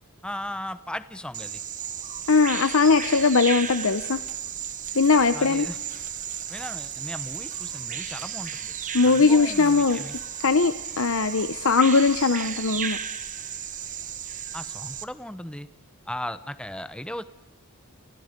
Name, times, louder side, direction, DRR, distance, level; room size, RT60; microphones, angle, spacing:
voice 1, 0.2-1.6 5.3-5.8 6.5-8.7 9.0-10.2 14.5-15.7 16.1-17.2, left 1 dB, 5° left, 12 dB, 0.9 m, -36 dB
Bird vocalization bird call bird song, 1.3-15.0, right 9 dB, 35° right, 1.2 m, -34 dB
voice 2, 2.3-4.2 4.9-5.7 8.9-10.0 10.4-13.0, left 4 dB, 65° left, 11 dB, 0.8 m, -20 dB
30.0 x 29.0 x 5.3 m, 1.1 s
head